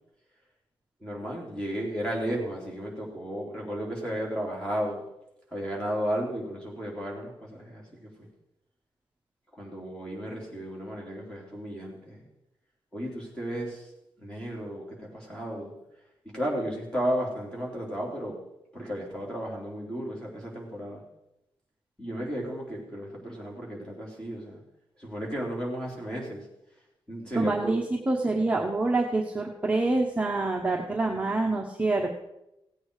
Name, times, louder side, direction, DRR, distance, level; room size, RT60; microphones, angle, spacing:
voice 1, 1.0-5.0 5.5-8.1 9.5-12.3 12.9-13.9 14.2-15.7 16.3-18.4 18.7-21.0 22.0-24.6 25.0-26.5 27.1-27.8, equal, 10° left, -3 dB, 3.6 m, -34 dB
voice 2, 27.3-32.2, right 2 dB, 15° right, 0 dB, 1.1 m, -26 dB
16.5 x 8.6 x 4.8 m, 0.87 s
wide cardioid pair, 160°, 9 cm